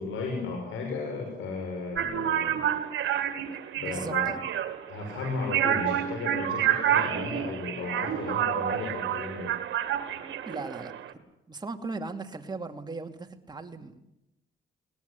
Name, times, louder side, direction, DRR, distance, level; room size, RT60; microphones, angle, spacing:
voice 1, 0.0-2.6 3.8-4.3 4.9-9.5, left 4 dB, 85° left, 2 dB, 6.4 m, -34 dB
sound 1, 1.9-11.1, right 10 dB, 70° right, 2.3 m, -29 dB
voice 2, 3.8-4.4 10.5-10.9 11.5-13.9, right 3 dB, 20° right, 5 dB, 2.7 m, -37 dB
22.5 x 19.0 x 10.0 m, 0.87 s
cardioid pair, 90°, 20 cm